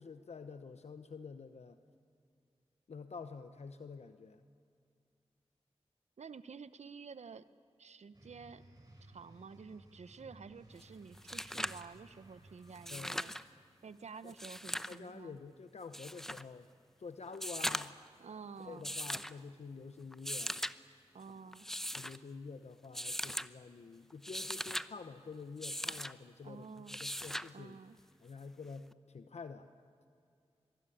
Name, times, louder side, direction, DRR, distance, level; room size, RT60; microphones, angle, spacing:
voice 1, 0.0-1.8 2.9-4.4 12.9-13.5 14.2-14.4 14.9-16.7 17.0-17.9 18.7-20.6 21.9-27.8 28.2-29.7, left 4 dB, 80° left, 9 dB, 1.0 m, -48 dB
voice 2, 6.2-7.4 7.8-8.6 9.1-13.3 13.8-15.4 18.2-18.9 21.1-21.7 26.4-27.0 27.5-28.0, right 5 dB, 85° right, 14 dB, 0.9 m, -50 dB
sound 1, 8.1-13.3, right 1 dB, 35° right, 6.3 m, -59 dB
sound 2, 10.8-10.9 11.1-11.9 12.7-13.4 14.3-15.0 15.9-16.4 17.3-18.1 18.8-19.3 20.1-20.7 21.5-22.2 22.9-23.5 24.1-24.9 25.6-26.1 26.9-27.5 28.9-29.0, equal, 5° left, 0.8 m, -39 dB
24.0 x 24.0 x 10.0 m, 2.4 s
cardioid pair, 45°, 11 cm